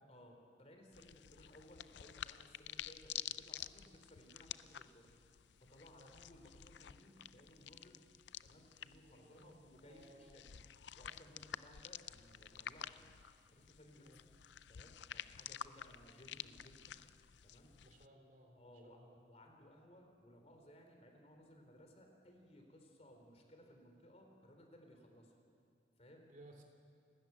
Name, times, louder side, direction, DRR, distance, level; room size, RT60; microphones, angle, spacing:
voice 1, 0.1-5.1 5.6-8.0 8.4-10.5 11.0-13.1 13.5-14.3 14.7-17.0 17.4-17.8 18.6-19.0 19.2-25.4 26.0-26.3, equal, 35° left, 3 dB, 3.1 m, -61 dB
sound 1, 0.9-18.1, left 10 dB, 65° left, 0.5 m, -51 dB
voice 2, 9.0-9.6 9.8-10.4 13.9-14.2 17.8-19.2 26.2-26.6, right 1 dB, 45° right, 2 dB, 3.2 m, -61 dB
29.5 x 13.5 x 9.3 m, 2.4 s
head